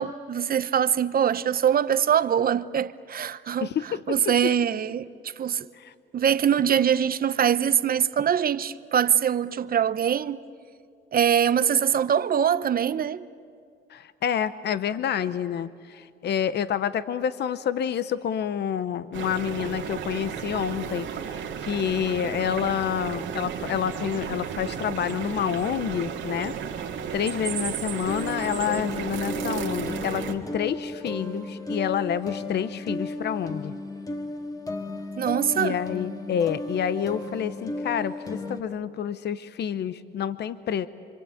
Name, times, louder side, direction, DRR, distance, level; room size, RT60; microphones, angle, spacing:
voice 1, 0.0-5.1 5.4-5.7 6.1-10.4 11.1-13.3 35.2-35.8, right 8 dB, 50° right, 0.8 m, -23 dB
voice 2, 3.6-4.0 5.8-5.9 13.9-26.5 27.1-33.7 35.5-40.9, left 9 dB, 60° left, 0.8 m, -28 dB
sound 1, 19.1-30.3, right 7 dB, 70° right, 2.1 m, -33 dB
sound 2, 28.0-38.6, left 2 dB, 20° left, 1.8 m, -34 dB
26.5 x 25.5 x 8.5 m
cardioid pair, 90°, 20 cm